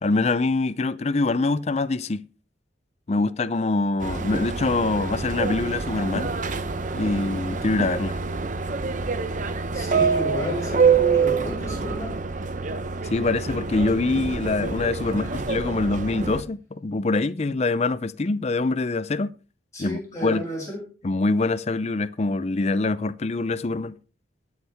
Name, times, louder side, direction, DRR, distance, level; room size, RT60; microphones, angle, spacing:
voice 1, 0.0-2.3 3.1-6.3 6.9-8.2 13.0-19.3 19.8-20.4 21.0-24.0, left 3 dB, 35° left, 0.5 m, -24 dB
Subway metro underground, 4.0-16.4, right 5 dB, 40° right, 0.8 m, -26 dB
voice 2, 9.7-12.1 15.2-15.3 19.7-20.8, equal, 15° left, 6.8 m, -31 dB
21.5 x 7.2 x 3.5 m
head